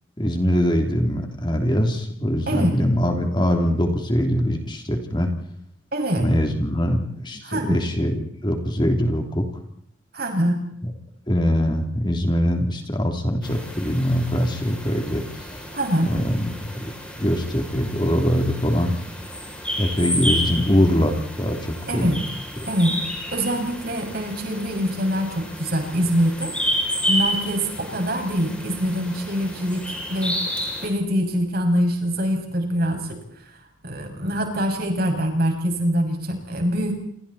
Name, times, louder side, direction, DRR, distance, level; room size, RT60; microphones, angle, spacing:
voice 1, 0.2-5.3 6.2-9.5 11.3-15.5 16.1-16.9 17.2-18.9 19.8-22.2, equal, 20° left, 3 dB, 3.2 m, -22 dB
voice 2, 2.5-2.8 5.9-6.3 7.4-7.8 10.1-10.6 15.7-16.1 21.9-22.2 22.7-22.9 23.3-26.5 27.0-30.4 30.8-33.2 33.8-37.0, equal, 50° right, 3 dB, 6.6 m, -24 dB
sound 1, 13.4-30.9, equal, 5° left, 6.8 m, -31 dB
28.0 x 28.0 x 4.3 m, 0.67 s
head